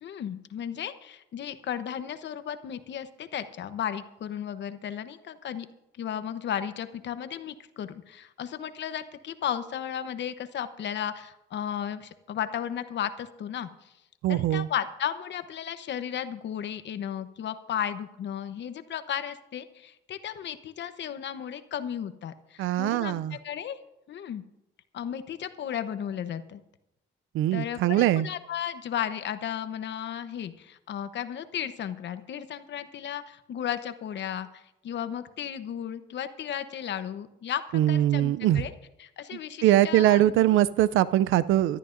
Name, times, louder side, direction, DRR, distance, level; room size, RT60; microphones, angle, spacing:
voice 1, 0.0-5.7 6.0-13.9 14.3-23.8 24.1-24.4 24.9-26.6 27.5-38.7 39.0-40.6, left 9 dB, 65° left, 11 dB, 0.9 m, -34 dB
voice 2, 14.2-14.7 22.6-23.4 27.3-28.3 37.7-38.6 39.6-41.8, right 13 dB, 85° right, 17 dB, 0.4 m, -22 dB
24.0 x 13.0 x 2.6 m, 0.87 s
cardioid pair, 90°, 20 cm